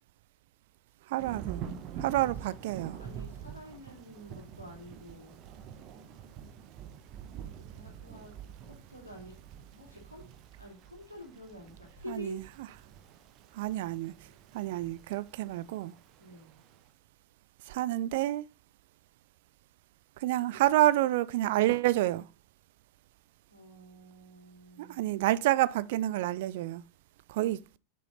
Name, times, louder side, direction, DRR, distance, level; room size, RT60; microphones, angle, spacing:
voice 1, 1.1-1.7 2.0-3.0 12.1-12.4 13.5-14.1 14.5-15.9 17.7-18.4 20.2-22.3 24.8-26.8 27.3-27.6, right 15 dB, 50° right, 0.3 m, -28 dB
Thunder / Rain, 1.2-16.8, right 8 dB, 35° right, 0.8 m, -46 dB
voice 2, 2.9-5.4 7.4-9.4 9.7-10.2 10.6-12.4 16.2-16.6 23.5-25.1, left 1 dB, 85° left, 2.5 m, -48 dB
6.3 x 5.4 x 4.0 m
figure-of-eight pair, 90°, 0 cm